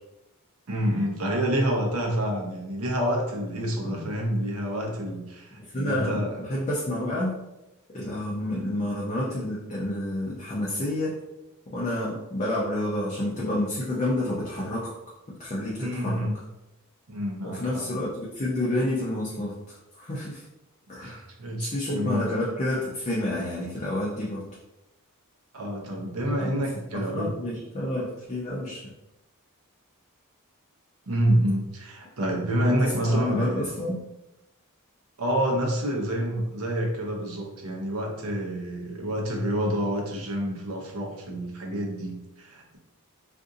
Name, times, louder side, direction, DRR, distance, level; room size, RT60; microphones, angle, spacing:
voice 1, 0.7-6.4 8.5-8.6 15.8-16.4 17.1-17.8 21.0-22.2 25.5-27.3 31.1-33.7 35.2-42.8, equal, 70° right, 0 dB, 0.7 m, -28 dB
voice 2, 5.6-7.4 7.9-11.2 11.7-14.9 15.3-16.3 17.4-20.4 20.9-21.2 21.6-24.4 26.4-26.6 26.9-28.9 32.6-34.0, left 1 dB, 30° left, -6 dB, 0.5 m, -29 dB
2.6 x 2.5 x 3.6 m, 0.96 s
head